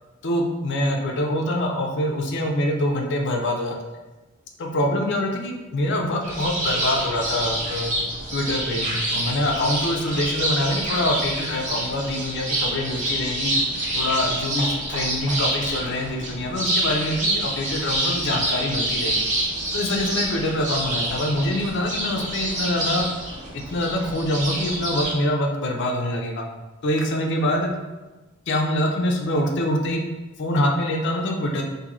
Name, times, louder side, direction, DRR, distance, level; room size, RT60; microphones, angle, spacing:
voice 1, 0.2-3.8 4.6-8.0 8.3-13.5 13.9-19.2 19.7-23.1 23.7-26.4 26.8-27.7 28.5-30.0 30.4-31.6, left 1 dB, 60° left, 2 dB, 0.5 m, -25 dB
sound 1, 6.2-25.1, right 1 dB, 35° right, 0.8 m, -27 dB
3.0 x 2.7 x 3.8 m, 1.1 s
head